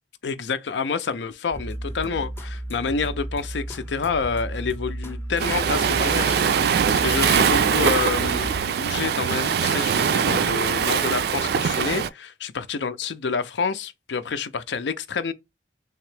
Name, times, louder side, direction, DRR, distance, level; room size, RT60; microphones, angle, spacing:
voice 1, 0.2-15.3, left 5 dB, 75° left, 0.5 m, -28 dB
sound 1, 1.5-8.6, right 1 dB, 15° left, 0.6 m, -34 dB
Waves surf, 5.4-12.1, right 7 dB, 60° right, 0.4 m, -22 dB
3.5 x 2.9 x 3.3 m
head